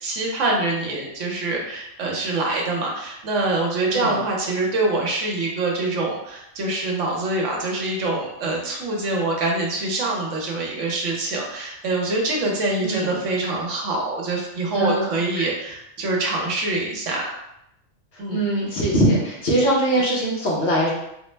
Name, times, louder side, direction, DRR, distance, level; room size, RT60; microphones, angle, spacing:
voice 1, 0.0-17.4 18.2-18.4, right 2 dB, 75° right, -1 dB, 1.1 m, -25 dB
voice 2, 12.8-13.1 14.7-15.5 18.3-20.9, right 1 dB, 60° left, -4 dB, 1.1 m, -22 dB
3.7 x 2.1 x 3.2 m, 0.80 s
omnidirectional pair, 1.3 m